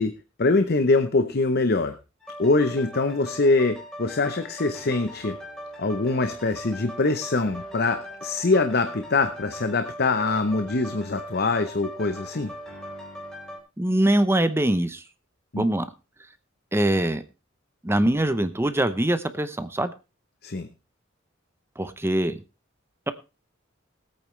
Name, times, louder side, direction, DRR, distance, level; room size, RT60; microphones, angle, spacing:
voice 1, 0.0-2.0 2.4-5.4 5.8-12.5 15.5-15.6 20.4-20.7, left 3 dB, 55° left, 9 dB, 0.8 m, -23 dB
sound 1, 2.2-13.6, equal, 5° left, 4.0 m, -40 dB
voice 2, 13.8-15.0 15.6-15.9 16.7-17.2 17.8-19.9 21.8-22.4, right 1 dB, 15° right, 12 dB, 0.7 m, -23 dB
20.0 x 8.8 x 3.2 m, 0.29 s
head